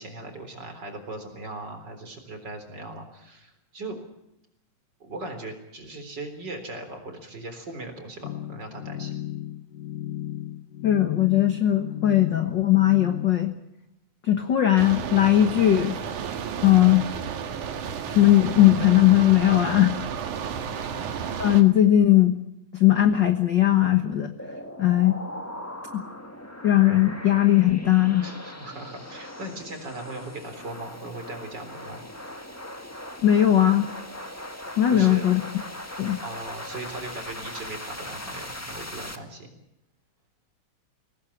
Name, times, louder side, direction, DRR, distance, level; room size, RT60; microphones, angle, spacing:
voice 1, 0.0-4.0 5.0-9.1 20.6-20.9 28.2-32.0 34.9-35.2 36.2-39.5, right 2 dB, 35° right, 6 dB, 4.2 m, -39 dB
sound 1, 8.2-13.3, left 13 dB, 80° left, 2.5 m, -35 dB
voice 2, 10.8-13.5 14.2-16.0 16.6-17.1 18.1-20.0 20.8-20.9 21.4-22.4 22.7-24.3 24.8-25.2 25.9-26.0 26.6-28.3 33.2-33.9 34.8-35.4 36.0-36.2, left 12 dB, 50° left, 7 dB, 1.4 m, -19 dB
sound 2, 14.8-21.6, right 7 dB, 75° right, 3.0 m, -32 dB
sound 3, 24.4-39.2, left 1 dB, 15° left, 0.5 m, -39 dB
23.0 x 18.0 x 8.6 m, 0.84 s
omnidirectional pair, 3.6 m